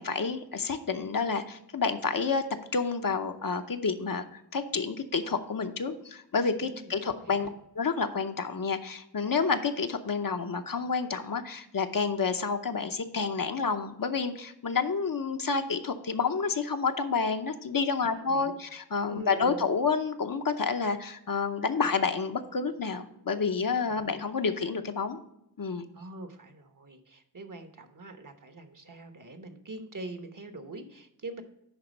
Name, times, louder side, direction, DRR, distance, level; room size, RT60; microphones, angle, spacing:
voice 1, 0.0-2.4 2.7-7.5 7.8-25.2 25.6-25.8, left 5 dB, 60° left, 7 dB, 0.7 m, -29 dB
voice 2, 6.6-7.5 18.0-18.6 19.1-19.6 23.9-24.0 25.9-31.4, right 2 dB, 55° right, 8 dB, 1.1 m, -44 dB
10.5 x 4.1 x 5.2 m, 0.83 s
wide cardioid pair, 55°, 38 cm